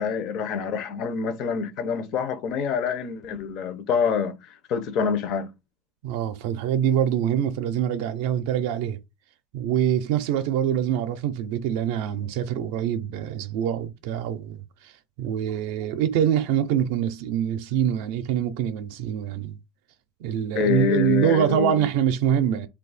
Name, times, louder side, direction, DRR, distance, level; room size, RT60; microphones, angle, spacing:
voice 1, 0.0-5.5 20.5-21.9, left 6 dB, 45° left, 0.5 m, -26 dB
voice 2, 6.0-9.0 9.5-14.9 15.2-19.6 20.2-22.7, right 9 dB, 70° right, 0.4 m, -25 dB
2.7 x 2.3 x 3.9 m
cardioid pair, 165°, 0 cm